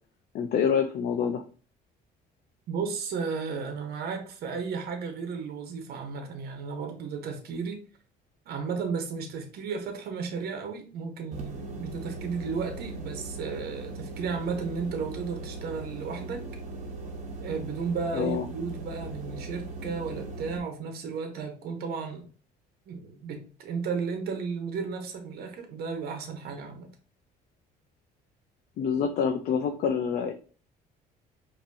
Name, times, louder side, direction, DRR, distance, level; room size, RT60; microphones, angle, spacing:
voice 1, 0.3-1.4 18.1-18.5 28.8-30.3, left 7 dB, 65° left, 0.6 m, -26 dB
voice 2, 2.7-7.8 8.5-16.4 17.4-22.3 22.9-26.9, right 5 dB, 70° right, 1.1 m, -34 dB
sound 1, 11.3-20.6, right 2 dB, 45° right, 1.2 m, -39 dB
5.3 x 3.0 x 2.6 m
cardioid pair, 110°, 17 cm